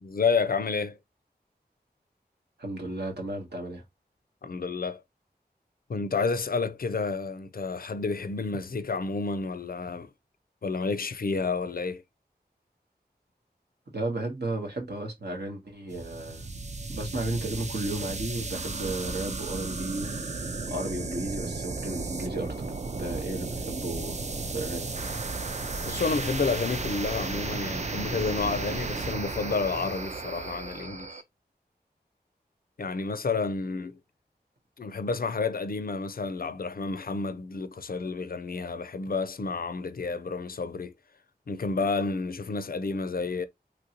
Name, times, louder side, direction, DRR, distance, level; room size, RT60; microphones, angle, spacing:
voice 1, 0.0-1.0 4.4-5.0 5.9-10.1 10.6-12.0 25.8-31.1 32.8-34.0 34.8-40.9 41.5-43.5, left 4 dB, 60° left, 0.4 m, -30 dB
voice 2, 2.6-3.8 13.9-16.5 16.9-20.2 20.7-22.7 23.0-24.9, right 2 dB, 75° right, 1.0 m, -34 dB
sound 1, 15.9-31.2, right 3 dB, 45° right, 0.4 m, -34 dB
3.0 x 2.6 x 2.8 m
wide cardioid pair, 55°, 17 cm